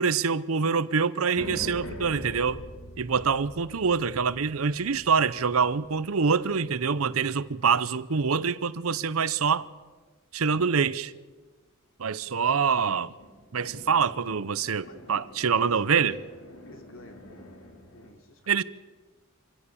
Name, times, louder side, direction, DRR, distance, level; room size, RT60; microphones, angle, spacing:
voice 1, 0.0-2.6 3.0-9.7 10.3-11.1 12.0-13.1 13.5-16.2 18.5-18.6, right 5 dB, 75° right, 0.8 m, -25 dB
sound 1, 1.3-7.9 13.2-18.1, equal, 90° left, 3.4 m, -45 dB
voice 2, 15.5-16.4 16.6-18.5, left 1 dB, 70° left, 3.1 m, -50 dB
26.0 x 16.5 x 7.1 m
head